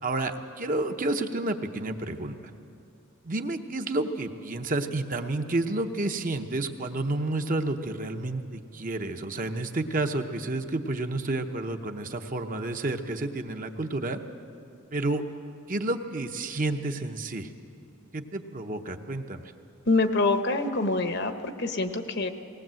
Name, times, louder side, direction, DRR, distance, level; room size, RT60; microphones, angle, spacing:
voice 1, 0.0-2.3 3.2-14.2 14.9-15.2 15.7-17.5 18.1-19.4, right 2 dB, 40° right, 6 dB, 0.9 m, -30 dB
voice 2, 19.8-22.3, left 3 dB, 50° left, 8 dB, 1.0 m, -25 dB
19.0 x 19.0 x 7.7 m, 2.7 s
head